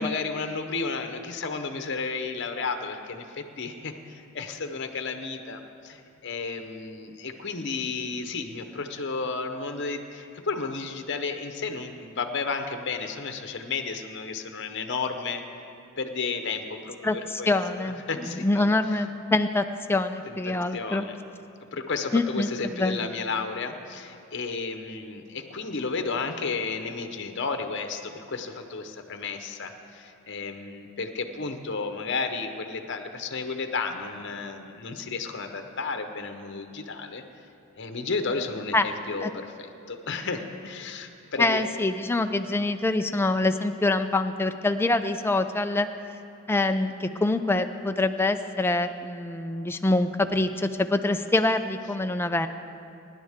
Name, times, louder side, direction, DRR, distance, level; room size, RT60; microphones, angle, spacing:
voice 1, 0.0-15.4 16.0-18.7 20.3-21.2 21.6-37.2 37.8-41.7, left 4 dB, 55° left, 6 dB, 0.9 m, -33 dB
voice 2, 17.0-21.0 22.1-23.1 38.7-38.9 39.2-39.3 41.4-45.9 46.5-52.5, left 2 dB, 10° left, 8 dB, 0.4 m, -25 dB
23.5 x 11.0 x 3.6 m, 2.6 s
head